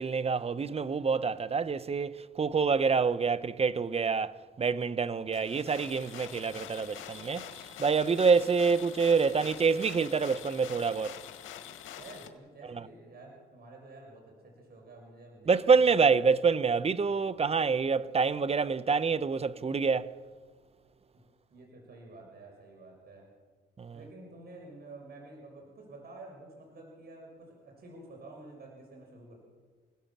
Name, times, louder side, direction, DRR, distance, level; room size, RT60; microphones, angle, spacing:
voice 1, 0.0-11.2 12.7-12.9 15.5-20.1 23.8-24.0, right 5 dB, 30° right, 1.0 m, -27 dB
sound 1, 5.3-12.3, left 10 dB, 85° left, 2.0 m, -45 dB
voice 2, 11.9-16.2 21.5-23.3 23.9-29.4, right 2 dB, 50° right, 6.6 m, -50 dB
29.0 x 17.5 x 7.4 m
cardioid pair, 90°, 20 cm